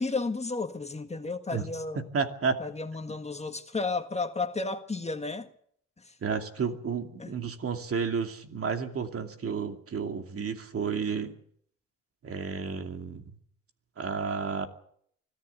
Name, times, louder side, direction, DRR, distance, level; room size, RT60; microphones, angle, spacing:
voice 1, 0.0-2.0 2.6-5.5 6.1-6.2 7.2-7.3, left 3 dB, 20° left, 1.7 m, -32 dB
voice 2, 2.1-2.6 6.2-11.3 12.2-13.2 14.0-14.7, right 5 dB, 50° right, 2.6 m, -31 dB
24.5 x 14.5 x 8.1 m
cardioid pair, 90°, 30 cm